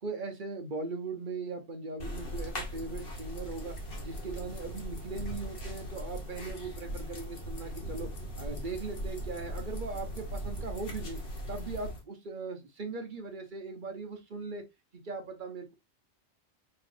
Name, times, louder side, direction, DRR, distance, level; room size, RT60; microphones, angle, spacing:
voice 1, 0.0-3.8 4.0-8.1 8.4-11.2 11.5-14.6 14.9-15.7, right 3 dB, 50° right, 0.9 m, -39 dB
sound 1, 2.0-12.0, equal, 55° left, 1.4 m, -39 dB
4.6 x 3.2 x 2.5 m
omnidirectional pair, 1.2 m